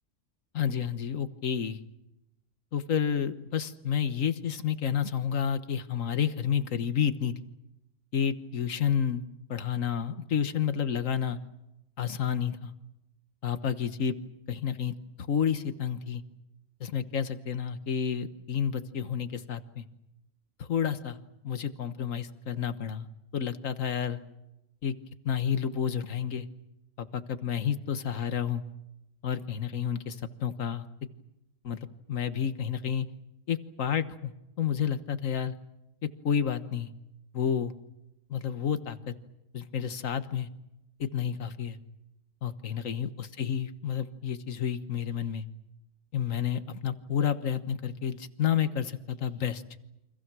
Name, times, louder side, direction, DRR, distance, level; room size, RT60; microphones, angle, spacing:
voice 1, 0.5-1.8 2.7-7.3 8.1-9.2 9.5-11.4 12.0-12.7 13.4-14.2 14.5-14.9 15.3-16.2 16.8-19.8 20.6-21.2 21.4-23.1 23.3-24.2 24.8-24.9 25.2-26.5 27.0-28.6 29.2-30.8 31.6-31.8 32.1-33.1 33.5-35.5 36.0-36.9 37.3-37.7 38.3-39.1 39.5-40.5 41.0-41.8 42.4-45.4 46.1-49.6, left 8 dB, 75° left, 11 dB, 1.6 m, -30 dB
29.0 x 25.0 x 6.2 m, 0.90 s
omnidirectional pair, 1.4 m